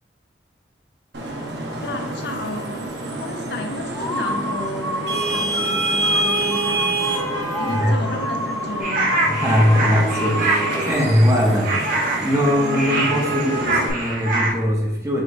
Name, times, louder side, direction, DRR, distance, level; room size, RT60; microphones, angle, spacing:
Vehicle horn car horn honking / Traffic noise roadway noise, 1.1-13.9, right 2 dB, 75° right, 0.9 m, -27 dB
voice 1, 1.8-2.9 3.2-7.1 7.6-9.2, left 2 dB, 70° left, 4 dB, 0.6 m, -32 dB
sound 1, 3.9-11.1, left 1 dB, 15° left, 0.4 m, -29 dB
voice 2, 7.6-7.9 9.2-15.2, left 1 dB, 15° right, -1 dB, 0.8 m, -21 dB
sound 2, 8.8-14.5, right 2 dB, 45° right, 0.8 m, -24 dB
6.2 x 3.1 x 2.6 m, 1.0 s
head